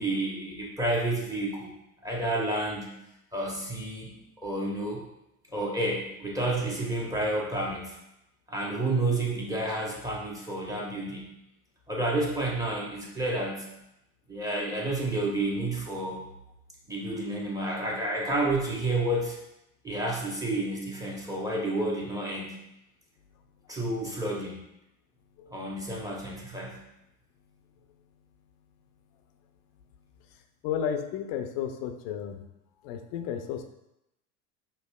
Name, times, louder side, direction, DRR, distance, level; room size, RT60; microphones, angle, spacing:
voice 1, 0.0-1.7 2.0-2.9 3.3-4.1 4.4-5.0 5.5-7.9 8.5-11.2 11.9-13.7 14.3-16.2 16.9-19.4 19.8-22.6 23.7-24.6 25.5-26.8, right 2 dB, 10° right, -3 dB, 1.0 m, -30 dB
voice 2, 30.6-32.5 32.8-33.6, left 8 dB, 60° left, 7 dB, 0.6 m, -32 dB
5.3 x 2.4 x 2.3 m, 0.86 s
hypercardioid pair, 80°, 44 cm